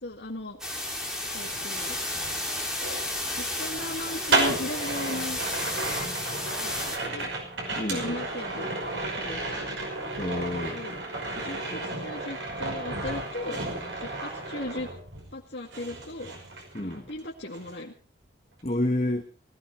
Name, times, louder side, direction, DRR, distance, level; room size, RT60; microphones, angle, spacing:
voice 1, 0.0-0.6 1.3-2.0 3.4-5.4 6.6-7.3 7.7-9.8 10.7-11.0 11.4-13.6 14.0-14.9 15.3-16.3 16.8-17.9, left 2 dB, 70° left, 2.1 m, -37 dB
sound 1, 0.6-7.0, left 1 dB, 5° right, 3.2 m, -32 dB
sound 2, 1.3-15.4 15.7-17.2 17.5-17.8, right 2 dB, 90° right, 5.6 m, -33 dB
voice 2, 7.8-8.2 10.2-10.8 16.7-17.1 18.6-19.2, left 1 dB, 35° left, 1.4 m, -29 dB
19.5 x 14.5 x 4.5 m
head